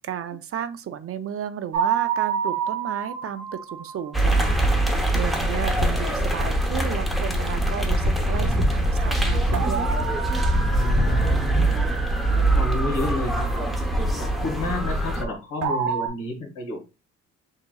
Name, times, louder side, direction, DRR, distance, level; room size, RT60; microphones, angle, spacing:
voice 1, 0.1-10.1, right 9 dB, 50° right, 0.5 m, -33 dB
sound 1, 1.7-4.7 9.5-11.7 15.6-16.1, right 8 dB, 80° right, 1.2 m, -28 dB
sound 2, 4.1-15.2, right 1 dB, ahead, 0.8 m, -23 dB
voice 2, 10.7-11.7 12.3-13.6 14.2-16.9, left 2 dB, 90° left, 1.6 m, -31 dB
5.4 x 2.9 x 2.3 m
cardioid pair, 90°, 30 cm